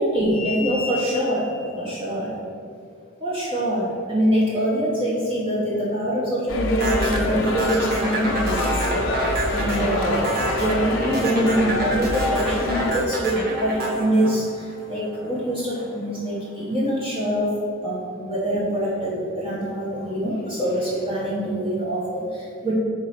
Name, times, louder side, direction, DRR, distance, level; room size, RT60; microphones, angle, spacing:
voice 1, 0.0-2.4 3.2-17.5 17.8-22.7, equal, 25° right, -7 dB, 1.1 m, -24 dB
sound 1, 6.5-13.0, left 1 dB, 85° left, 0.8 m, -27 dB
sound 2, 6.8-15.2, equal, 50° right, 1.4 m, -27 dB
4.8 x 4.3 x 5.8 m, 2.4 s
head